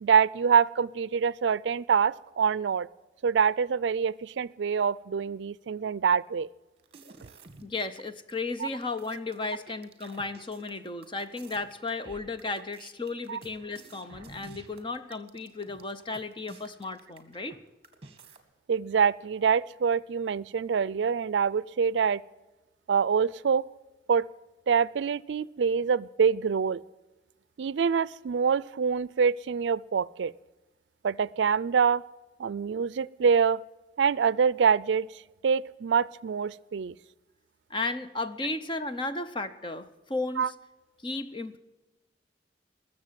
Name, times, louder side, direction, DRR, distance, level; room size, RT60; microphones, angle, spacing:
voice 1, 0.0-2.9 3.2-6.5 8.6-8.7 13.3-13.4 18.7-22.2 22.9-23.6 24.1-24.3 24.7-26.8 27.6-30.3 31.0-32.0 32.4-33.6 34.0-35.1 35.4-36.9 40.4-40.5, right 6 dB, 80° right, 21 dB, 0.4 m, -25 dB
sound 1, 6.8-8.0 8.3-8.4 8.7-17.6 17.8-18.4, right 3 dB, 35° right, 1.8 m, -51 dB
voice 2, 7.6-17.6 37.7-40.5 41.0-41.6, left 3 dB, 25° left, 11 dB, 0.8 m, -34 dB
21.0 x 7.4 x 7.5 m, 1.1 s
head